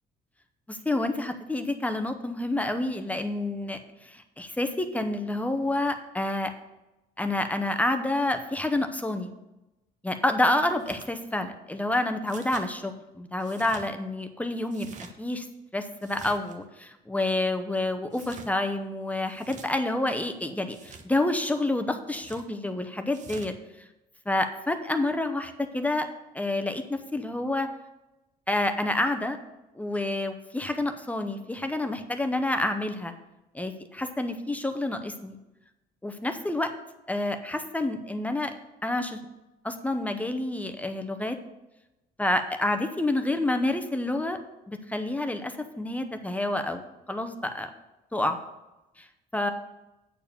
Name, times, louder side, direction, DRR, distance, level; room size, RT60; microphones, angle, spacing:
voice 1, 0.7-6.5 7.2-9.3 10.0-14.9 15.2-15.5 15.7-23.5 24.3-26.1 26.3-27.7 28.5-29.4 29.8-33.1 33.5-35.4 36.0-36.7 37.1-38.5 38.8-39.2 39.6-41.4 42.2-44.4 44.7-47.7 48.1-48.4 49.0-49.1 49.3-49.5, left 2 dB, 10° left, 7 dB, 0.7 m, -28 dB
sound 1, 10.8-11.1 12.3-12.7 13.4-13.9 14.7-15.1 16.0-16.6 18.1-18.5 19.3-19.7 20.7-21.1 22.1-22.5 23.1-23.5, right 4 dB, 50° right, 1.0 m, -46 dB
8.7 x 4.6 x 6.9 m, 0.98 s
cardioid pair, 110°, 16 cm